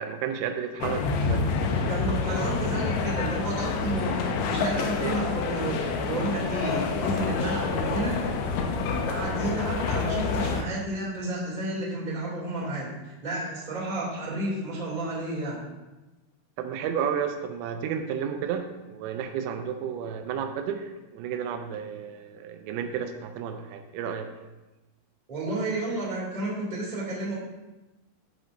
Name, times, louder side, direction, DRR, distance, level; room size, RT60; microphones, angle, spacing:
voice 1, 0.0-1.5 16.6-24.3, right 7 dB, 85° right, 6 dB, 2.8 m, -32 dB
sound 1, 0.8-10.6, left 4 dB, 90° left, 3.0 m, -28 dB
voice 2, 1.9-8.2 9.0-15.6 25.3-27.3, right 1 dB, 15° right, -7 dB, 1.6 m, -31 dB
13.5 x 5.4 x 2.6 m, 1.1 s
omnidirectional pair, 5.1 m